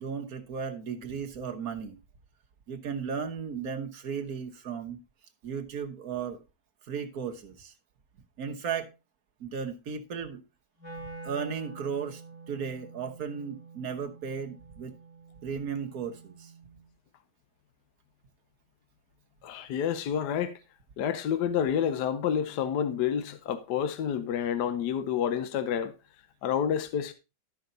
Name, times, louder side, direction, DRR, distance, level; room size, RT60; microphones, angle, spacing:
voice 1, 0.0-2.0 2.7-5.0 5.4-6.4 6.9-7.7 8.4-8.9 9.4-10.4 11.2-12.2 12.5-14.9 15.4-16.5, right 6 dB, 60° right, 1.5 m, -35 dB
Wind instrument woodwind instrument, 10.8-16.9, right 3 dB, 90° left, 5.1 m, -47 dB
voice 2, 19.4-20.6 21.0-25.9 26.4-27.1, left 8 dB, 70° left, 1.3 m, -29 dB
12.5 x 5.7 x 3.9 m
omnidirectional pair, 1.9 m